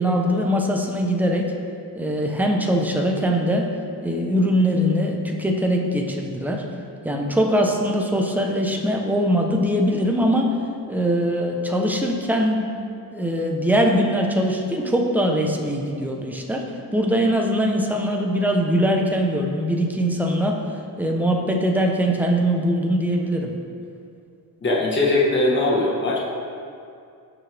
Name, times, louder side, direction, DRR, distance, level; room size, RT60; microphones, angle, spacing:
voice 1, 0.0-1.5 1.9-3.7 4.0-6.6 7.0-10.5 10.9-12.7 13.1-16.7 16.9-20.6 21.0-23.5, equal, 5° right, 0 dB, 0.9 m, -22 dB
voice 2, 24.6-26.2, left 2 dB, 30° left, -4 dB, 1.5 m, -20 dB
17.0 x 6.6 x 3.5 m, 2.4 s
cardioid pair, 155°, 37 cm